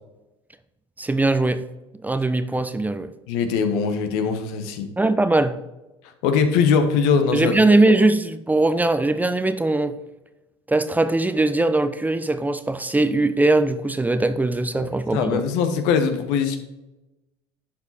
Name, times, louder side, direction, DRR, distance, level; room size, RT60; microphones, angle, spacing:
voice 1, 1.0-1.6 2.0-3.1 5.0-5.6 7.3-10.0 10.7-15.4, right 2 dB, 10° right, 0.7 m, -20 dB
voice 2, 3.3-4.9 6.2-7.5 14.7-16.6, left 6 dB, 70° left, 1.2 m, -21 dB
11.0 x 4.9 x 4.2 m
hypercardioid pair, 70°, 14 cm